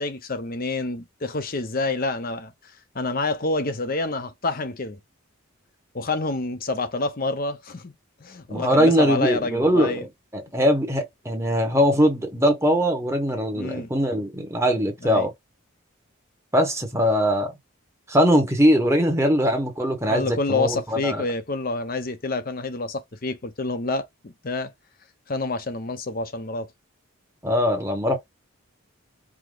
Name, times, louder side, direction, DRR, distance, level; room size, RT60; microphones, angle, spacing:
voice 1, 0.0-5.0 5.9-7.9 8.2-10.1 13.5-13.9 15.0-15.3 20.1-24.7 25.3-26.7, left 3 dB, 40° left, 0.7 m, -28 dB
voice 2, 8.5-10.1 10.3-15.3 16.5-17.5 18.1-21.2 27.4-28.2, equal, 10° right, 1.1 m, -21 dB
4.9 x 2.2 x 3.8 m
head